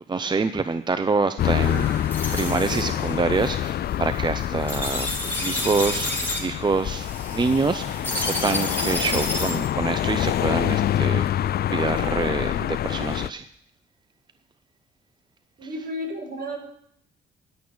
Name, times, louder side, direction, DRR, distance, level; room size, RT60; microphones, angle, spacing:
voice 1, 0.1-1.9 2.3-13.4, right 4 dB, 20° right, 10 dB, 0.6 m, -26 dB
sound 1, 1.4-13.3, left 11 dB, 55° left, 0.4 m, -26 dB
sound 2, 1.6-9.7, left 1 dB, 10° left, 4.8 m, -31 dB
voice 2, 15.6-16.6, equal, 50° right, 2 dB, 4.6 m, -32 dB
11.5 x 8.4 x 8.8 m, 0.72 s
cardioid pair, 90°, 20 cm